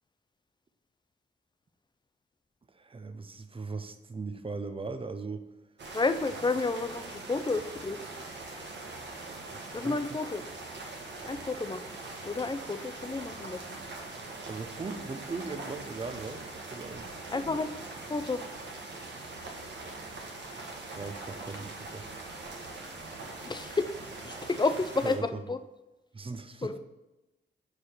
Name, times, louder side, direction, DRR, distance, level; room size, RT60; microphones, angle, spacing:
voice 1, 2.7-5.4 9.5-10.0 14.5-17.2 21.0-22.1 25.0-25.4 26.1-26.8, right 4 dB, 25° right, 9 dB, 0.7 m, -39 dB
sound 1, 5.8-25.2, right 2 dB, 60° right, 1.4 m, -42 dB
voice 2, 5.9-8.0 9.7-10.4 11.3-12.0 12.2-13.8 17.3-17.7 18.1-18.4 23.4-23.9 24.2-25.6 26.6-26.8, left 3 dB, 20° left, 10 dB, 0.5 m, -31 dB
4.9 x 4.9 x 5.7 m, 1.0 s
cardioid pair, 60°, 20 cm